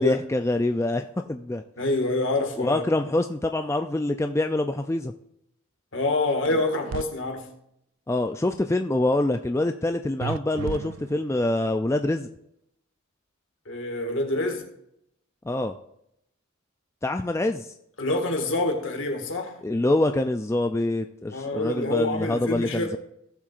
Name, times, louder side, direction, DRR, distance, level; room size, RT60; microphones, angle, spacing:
voice 1, 0.0-1.6 2.6-5.1 8.1-12.3 15.5-15.7 17.0-17.7 19.6-23.0, left 1 dB, 15° left, 0.3 m, -25 dB
voice 2, 1.8-2.9 5.9-7.5 13.7-14.7 18.0-19.6 21.3-23.0, left 2 dB, 65° left, 1.9 m, -26 dB
sound 1, 6.4-7.0 10.2-11.4, right 6 dB, 65° right, 0.3 m, -34 dB
17.5 x 7.4 x 2.5 m
head